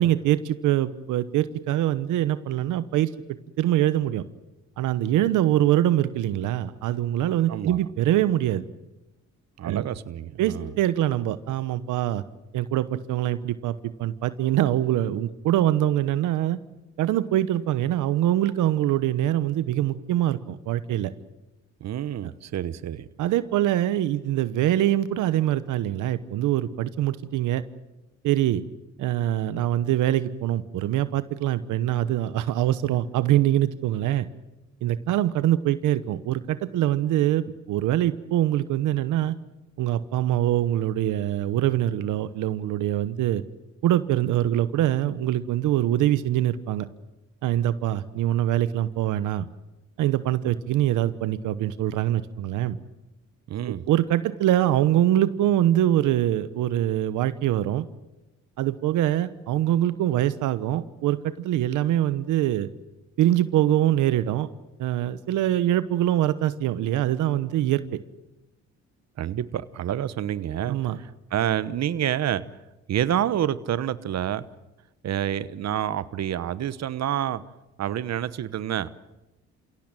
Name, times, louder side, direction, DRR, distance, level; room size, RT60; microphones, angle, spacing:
voice 1, 0.0-3.1 3.6-4.2 4.8-8.6 9.6-9.8 10.4-12.2 12.5-13.7 14.0-16.6 17.0-21.1 23.2-27.6 28.2-28.6 29.0-34.3 34.8-39.4 39.8-43.4 43.8-46.9 47.4-49.5 50.0-52.8 53.9-57.9 58.6-62.7 63.2-64.5 64.8-68.0 70.7-71.0, right 13 dB, 90° right, 14 dB, 1.0 m, -24 dB
voice 2, 7.5-7.8 9.6-10.7 21.8-23.1 53.5-53.8 69.2-72.5 72.9-74.5 75.0-77.4 77.8-78.9, right 10 dB, 60° right, 15 dB, 1.1 m, -28 dB
29.0 x 17.0 x 9.0 m, 1.0 s
cardioid pair, 90°, 30 cm